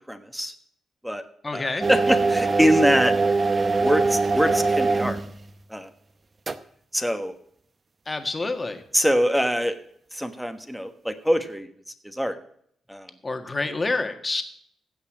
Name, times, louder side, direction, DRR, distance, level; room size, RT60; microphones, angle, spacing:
voice 1, 0.1-0.5 1.0-1.2 1.5-3.1 3.8-5.2 5.7-5.9 6.9-7.3 8.9-9.8 10.1-11.7 12.0-12.4 12.9-13.1, equal, ahead, 8 dB, 1.3 m, -24 dB
voice 2, 1.4-1.9 8.0-8.8 13.2-14.4, left 3 dB, 25° left, 7 dB, 1.7 m, -28 dB
sound 1, 1.8-5.5 6.5-6.6, right 3 dB, 35° right, 0.7 m, -22 dB
16.0 x 5.6 x 7.5 m, 0.65 s
cardioid pair, 95°, 0 cm